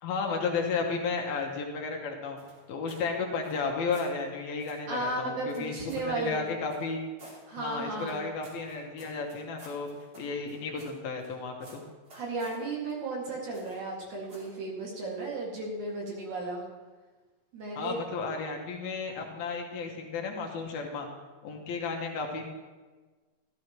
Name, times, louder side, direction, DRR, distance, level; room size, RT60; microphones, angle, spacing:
voice 1, 0.0-2.4 2.7-5.8 6.0-7.0 7.6-9.9 10.2-11.8 17.8-21.1 21.4-22.5, left 4 dB, 75° left, 2 dB, 3.0 m, -33 dB
sound 1, 2.4-3.1 3.4-4.1 4.6-4.8 5.5-6.1 6.7-7.4 8.0-11.3 11.6-12.6 13.5-13.9 14.3-14.6, right 1 dB, 30° right, 2.5 m, -52 dB
voice 2, 4.9-6.6 7.5-8.2 12.1-16.6 17.5-18.0, right 2 dB, 55° right, -3 dB, 3.4 m, -34 dB
13.5 x 13.0 x 3.1 m, 1.3 s
omnidirectional pair, 4.4 m